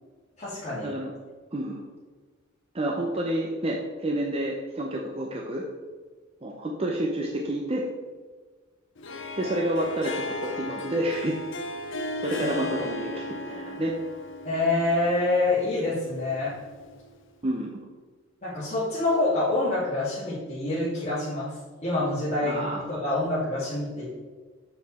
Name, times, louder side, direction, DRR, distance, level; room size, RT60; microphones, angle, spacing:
voice 1, 0.4-0.9 12.4-12.5 14.4-16.5 18.4-21.5 21.8-24.1, left 2 dB, 35° left, -11 dB, 2.3 m, -26 dB
voice 2, 2.7-5.6 6.4-7.8 9.4-11.4 12.2-13.9 17.4-17.7 22.4-23.0, right 1 dB, 30° right, -1 dB, 0.7 m, -29 dB
Harp, 9.0-17.2, left 2 dB, 65° left, 0.7 m, -36 dB
7.0 x 6.0 x 4.2 m, 1.4 s
head